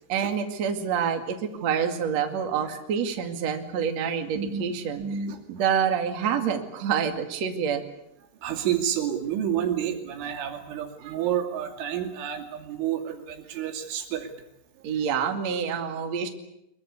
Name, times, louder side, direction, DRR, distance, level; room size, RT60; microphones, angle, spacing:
voice 1, 0.1-1.4 1.6-5.0 5.5-7.8 14.8-16.3, right 7 dB, 45° right, 5 dB, 2.7 m, -27 dB
voice 2, 5.0-5.4 8.4-14.3, right 9 dB, 80° right, 4 dB, 4.8 m, -29 dB
24.0 x 22.5 x 8.5 m, 0.83 s
omnidirectional pair, 5.5 m